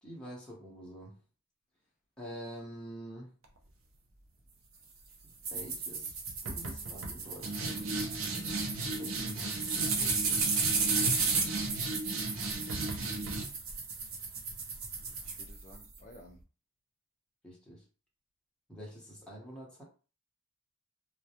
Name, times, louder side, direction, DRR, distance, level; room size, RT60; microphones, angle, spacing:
voice 1, 0.0-1.1 2.2-3.3 5.2-6.1 6.4-8.5 8.8-10.5 17.4-17.8 18.7-19.8, equal, 5° left, -5 dB, 0.8 m, -47 dB
sound 1, 5.4-16.0, right 4 dB, 70° right, 0.6 m, -33 dB
voice 2, 12.8-13.4 15.2-16.4, left 1 dB, 35° left, -3 dB, 0.3 m, -54 dB
2.2 x 2.1 x 2.8 m, 0.35 s
head